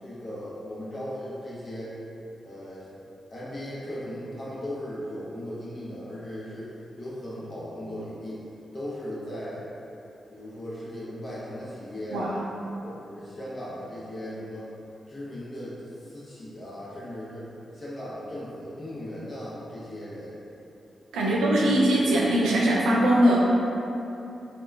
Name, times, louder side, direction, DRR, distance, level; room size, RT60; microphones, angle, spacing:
voice 1, 0.0-2.0 2.4-2.9 3.3-8.4 8.7-9.7 10.3-12.4 12.8-14.7 15.1-17.5 17.7-20.4 21.1-21.8 22.2-22.3, equal, 45° left, -9 dB, 0.9 m, -37 dB
voice 2, 21.1-23.4, right 1 dB, 90° right, -4 dB, 0.4 m, -21 dB
2.8 x 2.3 x 2.2 m, 2.8 s
supercardioid pair, 45°, 0 cm